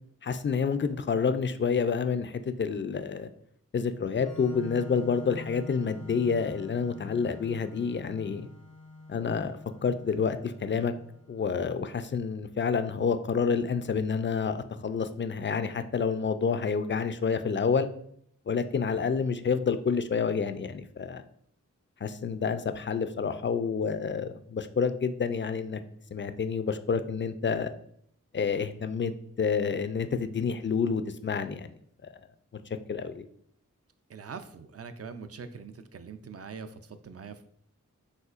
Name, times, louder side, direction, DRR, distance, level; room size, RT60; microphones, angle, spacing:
voice 1, 0.2-3.3 3.7-8.5 9.1-10.9 11.3-17.9 18.5-21.2 22.0-25.8 26.1-27.7 28.3-29.1 29.4-31.7 32.9-33.2, left 5 dB, 35° left, 10 dB, 0.4 m, -28 dB
Organ, 4.1-11.7, left 2 dB, 80° left, 0.9 m, -46 dB
voice 2, 34.1-37.5, right 5 dB, 50° right, 10 dB, 0.4 m, -43 dB
5.5 x 3.0 x 2.4 m, 0.67 s
cardioid pair, 40°, 32 cm